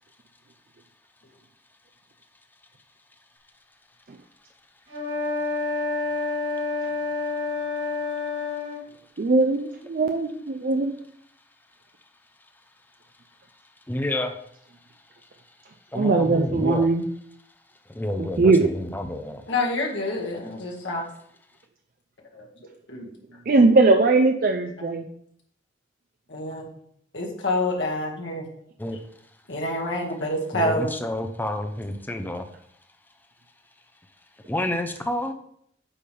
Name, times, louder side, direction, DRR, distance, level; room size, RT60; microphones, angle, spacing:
sound 1, 4.9-8.8, left 3 dB, 65° right, 2.4 m, -28 dB
voice 1, 9.2-10.9 15.9-17.0 18.2-18.7 23.5-25.1, right 3 dB, 50° right, 4 dB, 0.5 m, -20 dB
voice 2, 13.9-14.3 15.9-16.9 18.0-19.4 28.8-29.0 30.5-32.4 34.5-35.3, left 1 dB, 10° left, 7 dB, 0.6 m, -29 dB
voice 3, 19.5-21.1 22.3-22.5 22.9-23.0 26.3-26.7 27.1-28.5 29.5-30.9, left 1 dB, 90° left, -1 dB, 1.9 m, -27 dB
8.6 x 3.4 x 5.4 m, 0.67 s
head